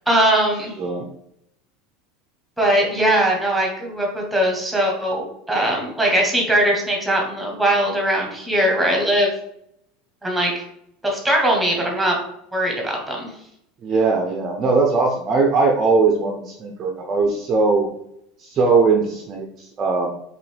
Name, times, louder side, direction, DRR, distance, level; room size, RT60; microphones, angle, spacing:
voice 1, 0.1-0.7 2.6-9.3 10.2-10.6 11.0-12.2 12.5-13.3, right 1 dB, ahead, -1 dB, 1.0 m, -20 dB
voice 2, 0.8-1.1 13.8-17.9 18.4-20.1, right 4 dB, 25° right, 2 dB, 0.5 m, -20 dB
4.9 x 3.1 x 3.3 m, 0.76 s
supercardioid pair, 170°, 0 cm